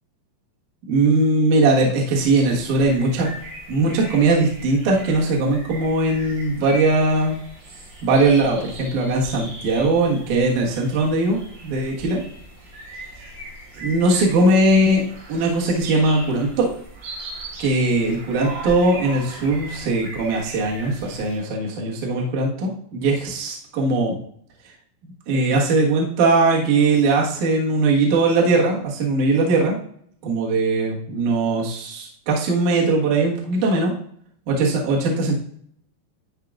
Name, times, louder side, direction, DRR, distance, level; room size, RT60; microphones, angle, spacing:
voice 1, 0.9-3.3 3.7-7.4 8.0-11.4 11.6-12.2 13.7-16.7 17.6-24.1 25.3-29.8 30.2-33.9 34.5-35.3, right 2 dB, 65° right, -3 dB, 2.0 m, -20 dB
sound 1, 2.2-21.4, right 1 dB, 85° right, 4.9 m, -39 dB
12.5 x 4.7 x 2.4 m, 0.65 s
omnidirectional pair, 5.4 m